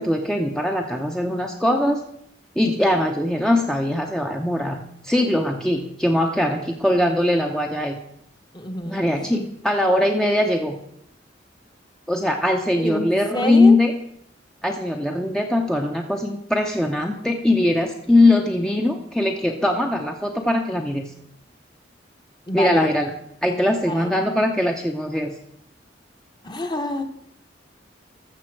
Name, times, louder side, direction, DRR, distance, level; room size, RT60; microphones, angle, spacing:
voice 1, 0.0-2.0 2.6-8.0 8.8-9.4 9.6-10.8 12.1-13.9 14.6-21.1 22.5-23.1 23.4-25.3, left 1 dB, 5° left, 2 dB, 0.7 m, -21 dB
voice 2, 8.5-9.4 12.8-13.1 13.3-13.8 22.5-22.9 23.9-24.1 26.4-27.0, left 1 dB, 25° left, 6 dB, 1.0 m, -27 dB
14.0 x 6.8 x 4.7 m, 0.74 s
head